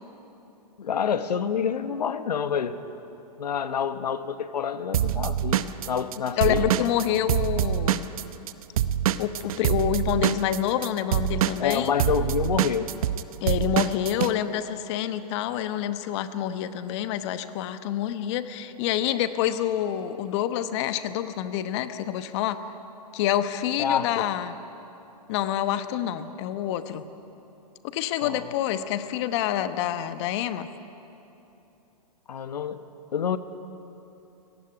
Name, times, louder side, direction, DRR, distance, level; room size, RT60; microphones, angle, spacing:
voice 1, 0.8-2.8 3.4-6.6 11.6-12.9 23.8-24.3 28.2-28.5 32.3-32.8 33.1-33.4, left 7 dB, 80° left, 11 dB, 1.2 m, -27 dB
Drum kit / Drum, 4.9-8.5 8.8-14.3, right 11 dB, 60° right, 0.8 m, -25 dB
voice 2, 6.4-8.1 9.2-11.9 13.4-22.6 23.1-24.6 25.3-27.0 27.8-30.7, left 11 dB, 45° left, 11 dB, 1.1 m, -27 dB
18.0 x 15.0 x 10.0 m, 3.0 s
hypercardioid pair, 130°, 20 cm